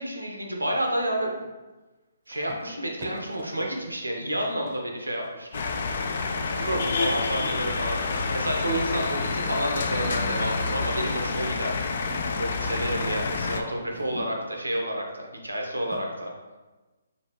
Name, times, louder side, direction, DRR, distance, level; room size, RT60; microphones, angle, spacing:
voice 1, 0.0-1.5 2.3-5.6 6.5-11.9 12.4-16.3, right 1 dB, 85° right, 0 dB, 0.8 m, -30 dB
sound 1, 2.3-7.6 8.5-14.8 15.9-16.0, right 1 dB, 35° right, 0.6 m, -47 dB
sound 2, 5.5-13.6, left 4 dB, 50° left, 0.3 m, -28 dB
5.2 x 2.4 x 3.0 m, 1.2 s
figure-of-eight pair, 135°, 0 cm